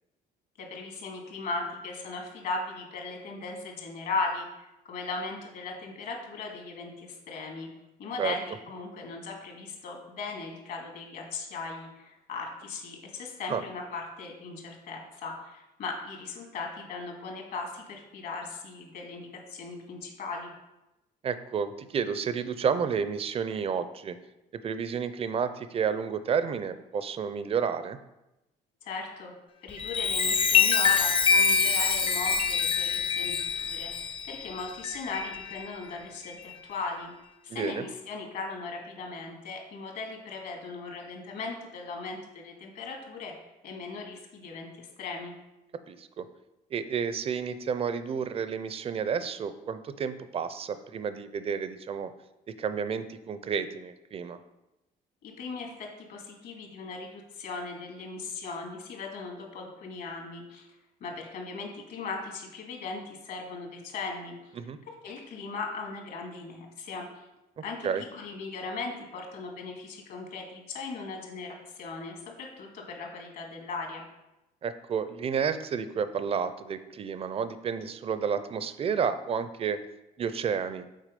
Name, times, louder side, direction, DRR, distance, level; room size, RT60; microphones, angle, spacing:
voice 1, 0.6-7.7 8.0-20.5 28.8-29.3 29.6-36.4 36.7-37.1 37.4-43.3 43.6-45.3 55.2-60.7 61.0-64.3 65.0-67.2 67.6-74.0, left 4 dB, 65° left, 0 dB, 2.1 m, -38 dB
voice 2, 21.2-24.2 24.5-28.0 37.5-37.8 45.9-46.3 46.7-52.1 52.5-54.4 64.5-64.8 67.6-68.0 74.6-79.8 80.2-80.9, right 6 dB, 35° right, 12 dB, 0.5 m, -31 dB
Chime, 29.7-35.7 36.2-36.5, left 6 dB, 30° left, 0.7 m, -25 dB
7.4 x 4.5 x 5.2 m, 0.95 s
cardioid pair, 110°, 17 cm